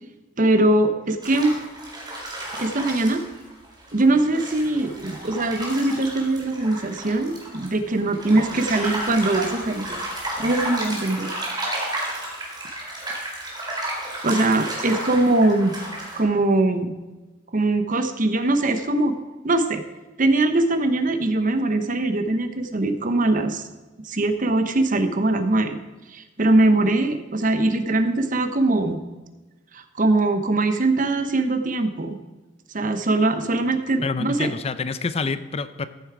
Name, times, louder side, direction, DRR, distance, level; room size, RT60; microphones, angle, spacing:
voice 1, 0.4-1.6 2.6-3.3 3.9-10.0 10.4-11.3 14.2-15.8 16.1-16.9 17.5-19.1 19.4-19.8 20.2-23.6 24.0-25.8 26.1-29.0 29.7-32.2 32.7-34.5, right 2 dB, 45° right, 8 dB, 0.9 m, -21 dB
sound 1, 1.2-16.2, right 1 dB, 20° right, 3.8 m, -32 dB
voice 2, 34.0-35.9, left 4 dB, 35° left, 13 dB, 0.5 m, -27 dB
14.5 x 7.1 x 4.7 m, 1.2 s
head